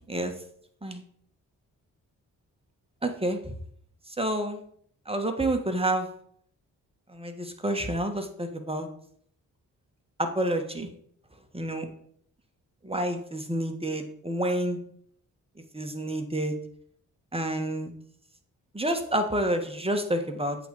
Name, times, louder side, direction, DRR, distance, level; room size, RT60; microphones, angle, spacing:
voice 1, 3.0-3.4 4.2-4.6 5.1-6.1 7.1-8.9 10.2-10.9 11.5-11.9 12.8-14.8 15.7-16.5 17.3-17.9 18.7-20.6, right 1 dB, 15° right, 5 dB, 1.7 m, -29 dB
8.2 x 4.1 x 6.6 m, 0.64 s
supercardioid pair, 45°, 38 cm